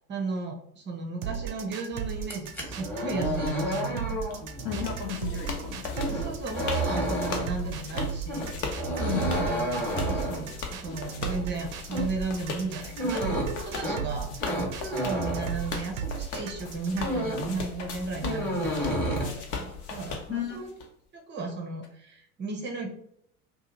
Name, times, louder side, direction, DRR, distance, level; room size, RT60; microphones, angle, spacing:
voice 1, 0.1-4.4 6.1-20.7 21.1-22.9, right 3 dB, 25° right, 2 dB, 0.7 m, -35 dB
sound 1, 1.2-17.2, right 9 dB, 65° right, 0.6 m, -36 dB
sound 2, 2.2-16.2 16.6-17.6 17.8-19.2, equal, 5° left, 1.0 m, -31 dB
sound 3, 4.3-20.9, left 5 dB, 60° left, 0.8 m, -39 dB
voice 2, 4.6-6.2 9.0-9.4 20.3-20.6, left 9 dB, 25° left, 1 dB, 0.5 m, -34 dB
2.7 x 2.6 x 3.7 m, 0.71 s
figure-of-eight pair, 80°, 45 cm